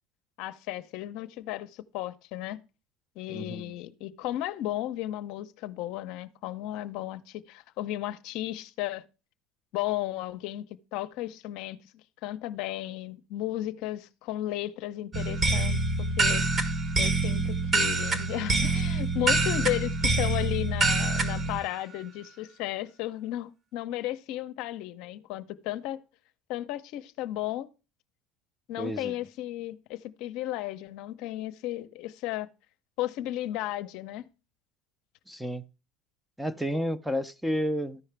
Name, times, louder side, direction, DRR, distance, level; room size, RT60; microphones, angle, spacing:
voice 1, 0.4-2.6 3.2-9.0 9.7-15.8 16.2-16.4 17.0-26.0 26.5-27.7 28.7-32.5 33.0-34.2, left 14 dB, 65° left, 0.6 m, -34 dB
voice 2, 3.3-3.7 19.6-19.7 28.8-29.2 35.3-35.7 36.4-38.0, equal, 5° right, 0.5 m, -31 dB
sound 1, 15.1-21.6, right 3 dB, 35° right, 1.1 m, -26 dB
13.5 x 4.8 x 3.3 m
supercardioid pair, 95°, 0 cm